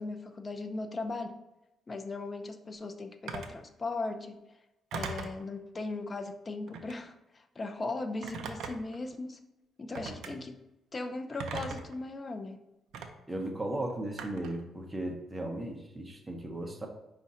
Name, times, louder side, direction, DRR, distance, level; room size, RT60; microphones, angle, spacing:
voice 1, 0.0-1.4 1.9-4.4 4.9-9.4 9.8-10.6 10.9-12.7, left 3 dB, 30° left, 7 dB, 0.5 m, -38 dB
Telephone, 3.3-3.6 4.9-5.4 6.7-7.0 8.2-9.0 9.9-10.3 11.4-12.0 12.9-13.1 14.2-14.6, right 5 dB, 80° right, 0.5 m, -39 dB
voice 2, 13.3-16.9, right 1 dB, 15° right, 2 dB, 0.8 m, -36 dB
5.1 x 2.5 x 4.2 m, 0.97 s
cardioid pair, 90°, 0 cm